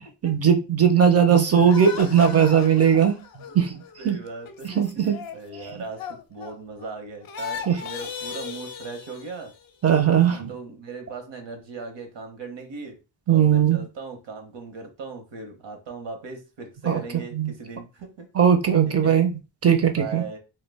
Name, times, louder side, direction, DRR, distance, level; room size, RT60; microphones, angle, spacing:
voice 1, 0.2-3.2 3.5-3.8 4.0-4.2 4.6-5.1 7.7-7.8 9.8-10.5 13.3-13.8 16.9-17.0 17.3-17.5 18.4-19.3 19.6-20.2, right 8 dB, 35° right, 0.5 m, -18 dB
sound 1, 1.5-6.9 7.2-9.7, left 6 dB, 55° left, 0.5 m, -37 dB
voice 2, 4.0-9.5 10.3-13.0 13.3-18.3 18.9-19.2 19.9-20.4, right 4 dB, 70° right, 0.9 m, -38 dB
2.2 x 2.2 x 3.3 m
wide cardioid pair, 120°, 45 cm